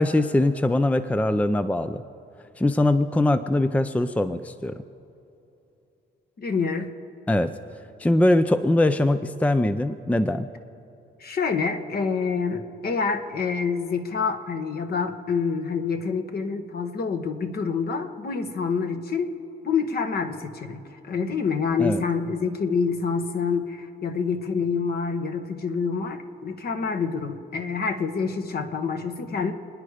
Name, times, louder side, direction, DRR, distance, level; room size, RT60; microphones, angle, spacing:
voice 1, 0.0-2.0 2.6-4.8 7.3-7.5 8.0-10.5 21.8-22.0, left 1 dB, 5° left, 11 dB, 0.5 m, -22 dB
voice 2, 6.4-6.9 11.2-19.3 19.6-29.5, left 5 dB, 50° left, 7 dB, 1.5 m, -27 dB
29.0 x 10.0 x 5.0 m, 2.9 s
cardioid pair, 90°, 20 cm